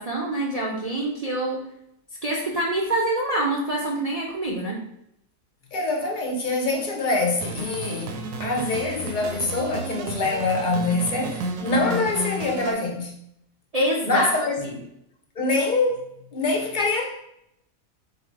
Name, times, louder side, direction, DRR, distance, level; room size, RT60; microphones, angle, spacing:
voice 1, 0.0-1.6 2.2-4.8 13.7-14.3 14.6-14.8, right 1 dB, 50° right, 0.4 m, -25 dB
voice 2, 5.7-13.2 14.1-14.6 15.4-17.2, left 3 dB, 50° left, 0.6 m, -25 dB
sound 1, 7.4-12.7, right 2 dB, 80° right, 1.0 m, -32 dB
4.2 x 2.7 x 4.4 m
omnidirectional pair, 1.4 m